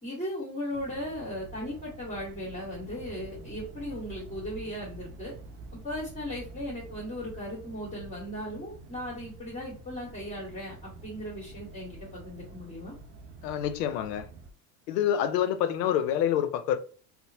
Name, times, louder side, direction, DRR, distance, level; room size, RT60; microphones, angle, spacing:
voice 1, 0.0-5.3 5.8-12.9, equal, 15° left, 1.5 m, -37 dB
sound 1, 0.7-14.5, right 2 dB, 30° right, 0.3 m, -47 dB
voice 2, 13.4-14.3 14.9-16.8, left 10 dB, 80° left, 0.6 m, -27 dB
2.8 x 2.1 x 2.7 m
hypercardioid pair, 90°, 47 cm